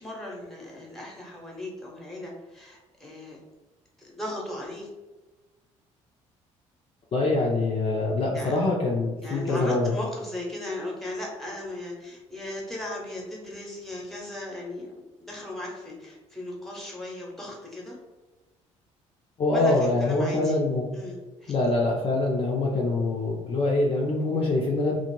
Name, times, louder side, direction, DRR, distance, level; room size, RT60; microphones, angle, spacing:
voice 1, 0.0-3.4 4.0-4.9 8.3-8.6 9.2-18.0 19.5-20.6 20.9-21.5, left 1 dB, ahead, -2 dB, 0.9 m, -37 dB
voice 2, 7.1-9.9 19.4-20.9 21.5-25.0, left 2 dB, 35° left, -2 dB, 0.5 m, -24 dB
2.4 x 2.1 x 3.0 m, 1.2 s
hypercardioid pair, 55°, 16 cm